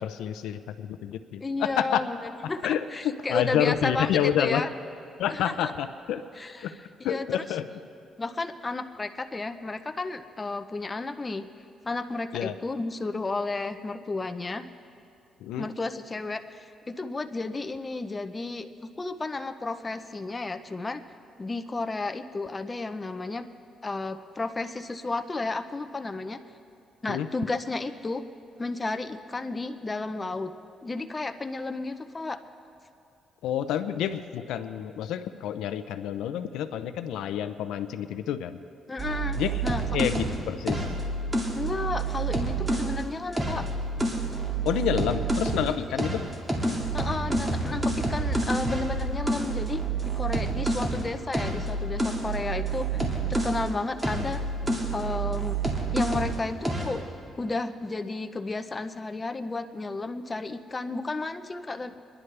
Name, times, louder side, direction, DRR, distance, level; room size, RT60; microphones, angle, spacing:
voice 1, 0.0-1.4 1.8-2.0 2.6-2.8 3.3-4.6 5.2-6.2 6.6-6.7 7.0-7.6 12.3-12.5 15.4-15.7 27.1-27.3 33.4-38.6 39.4-39.5 39.9-40.8 44.6-46.3 52.9-53.1, left 10 dB, 85° left, 10 dB, 0.5 m, -28 dB
voice 2, 1.4-4.1 4.4-4.7 5.3-5.7 6.4-6.7 7.0-7.4 8.2-11.5 11.8-14.7 15.6-18.7 19.0-21.0 21.4-23.5 23.8-26.4 27.0-28.3 28.6-30.5 30.8-32.4 38.9-39.8 41.5-43.7 46.9-52.9 53.3-54.5 54.9-55.6 55.9-57.1 57.4-62.0, left 3 dB, 25° left, 7 dB, 0.7 m, -32 dB
sound 1, 39.0-43.0 43.3-45.7 46.0-53.7 54.0-56.4 56.6-57.0, right 3 dB, 15° right, 2.1 m, -28 dB
23.5 x 11.0 x 3.3 m, 2.6 s
cardioid pair, 90°, 0 cm